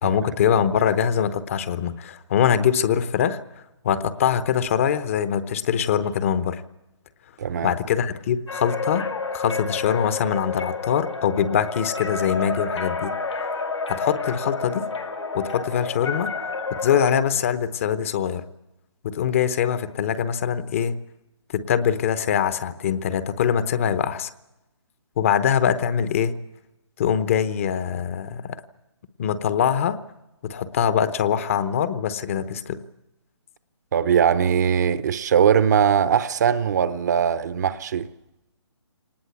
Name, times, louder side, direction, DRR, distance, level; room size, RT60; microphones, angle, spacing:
voice 1, 0.0-3.4 3.8-6.6 7.6-9.1 9.3-13.1 13.9-14.9 15.3-16.3 16.7-18.4 19.0-20.9 21.5-24.3 25.2-26.3 27.0-28.6 29.2-30.0 30.4-32.8, left 8 dB, 30° left, 0.9 m, -23 dB
voice 2, 7.4-7.7 33.9-38.1, right 8 dB, 35° right, 0.8 m, -20 dB
sound 1, 8.5-17.1, left 4 dB, 85° left, 5.3 m, -30 dB
24.0 x 19.0 x 8.3 m
hypercardioid pair, 165°, 15 cm